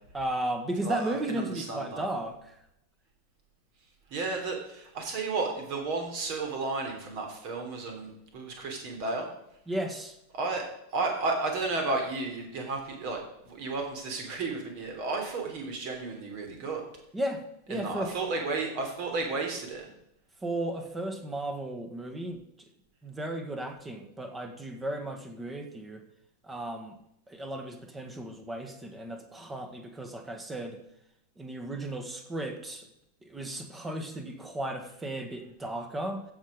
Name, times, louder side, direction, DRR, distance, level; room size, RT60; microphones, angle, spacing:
voice 1, 0.1-2.4 9.7-10.1 17.1-17.4 17.7-18.1 20.4-22.4 23.0-26.0 26.4-26.9 27.3-30.8 31.4-32.9 33.2-36.2, right 1 dB, 10° right, 6 dB, 1.7 m, -35 dB
voice 2, 0.8-2.0 4.1-9.3 10.3-10.6 10.9-16.8 17.7-19.9, right 3 dB, 45° right, 2 dB, 3.3 m, -33 dB
15.5 x 5.9 x 5.2 m, 0.80 s
figure-of-eight pair, 90°, 0 cm